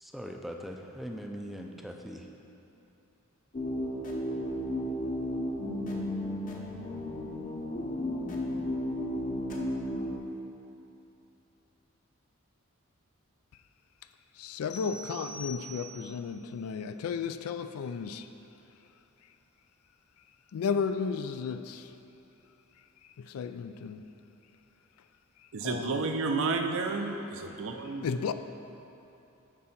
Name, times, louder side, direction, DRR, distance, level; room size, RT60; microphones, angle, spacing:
voice 1, 0.0-2.3, equal, ahead, 2 dB, 0.4 m, -41 dB
sound 1, 3.5-10.2, left 1 dB, 40° left, 0.8 m, -33 dB
voice 2, 14.4-18.3 20.5-21.9 23.2-24.0 25.6-26.0 28.0-28.3, left 6 dB, 75° left, 10 dB, 0.3 m, -33 dB
sound 2, 14.7-16.2, equal, 55° left, 1.7 m, -44 dB
voice 3, 25.5-28.1, right 3 dB, 65° right, 5 dB, 0.5 m, -31 dB
8.4 x 3.8 x 5.7 m, 2.9 s
head